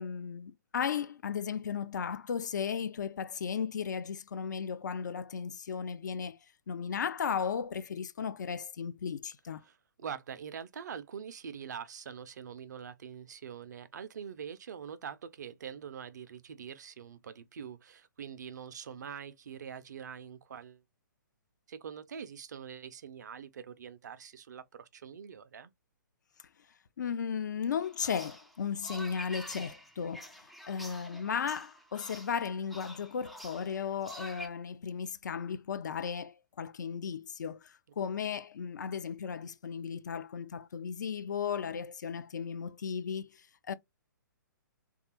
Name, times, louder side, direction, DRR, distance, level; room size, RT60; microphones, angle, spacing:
voice 1, 0.0-6.4 6.7-9.6 27.0-30.3 30.7-43.7, left 7 dB, 60° left, 0.5 m, -35 dB
voice 2, 9.6-20.8 21.7-25.7, right 7 dB, 60° right, 0.5 m, -44 dB
sound 1, 27.8-34.5, equal, ahead, 0.3 m, -47 dB
3.5 x 2.3 x 2.8 m
figure-of-eight pair, 125°, 11 cm